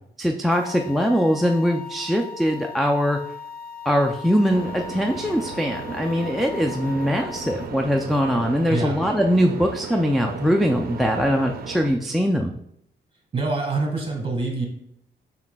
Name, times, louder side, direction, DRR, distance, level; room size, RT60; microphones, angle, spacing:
voice 1, 0.2-3.2 3.9-12.5, equal, ahead, 3 dB, 0.3 m, -22 dB
sound 1, 0.5-7.7, left 7 dB, 50° left, 0.5 m, -39 dB
sound 2, 4.5-11.9, right 6 dB, 55° right, 0.6 m, -35 dB
voice 2, 13.3-14.6, right 3 dB, 30° right, 0 dB, 1.6 m, -25 dB
7.2 x 5.8 x 2.2 m, 0.75 s
cardioid pair, 140°, 19 cm